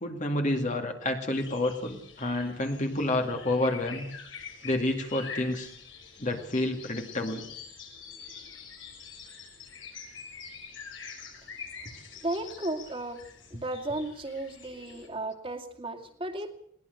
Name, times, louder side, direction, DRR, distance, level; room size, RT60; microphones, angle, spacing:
voice 1, 0.0-4.1 4.6-5.7 6.2-7.5, left 1 dB, 40° left, 4 dB, 2.2 m, -29 dB
sound 1, 1.3-15.1, left 6 dB, 85° left, 6.0 m, -45 dB
voice 2, 12.2-13.2 13.5-16.5, right 2 dB, 30° right, 4 dB, 2.3 m, -34 dB
21.5 x 18.0 x 6.7 m, 0.65 s
head